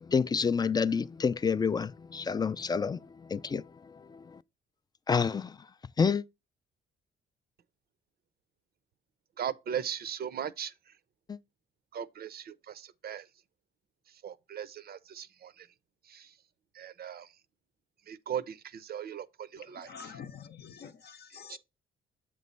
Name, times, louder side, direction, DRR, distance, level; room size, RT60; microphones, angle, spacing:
voice 1, 0.1-3.0 3.3-3.6 4.1-4.4 5.1-5.5 6.0-6.2 11.3-11.4, left 5 dB, 20° left, 0.3 m, -28 dB
voice 2, 9.4-10.7 11.9-13.3 14.2-15.7 16.1-16.3 16.7-17.3 18.1-19.9 21.5-21.6, right 8 dB, 50° right, 0.6 m, -38 dB
voice 3, 19.6-21.6, left 6 dB, 55° left, 0.6 m, -47 dB
7.6 x 3.1 x 5.3 m
cardioid pair, 90°, 20 cm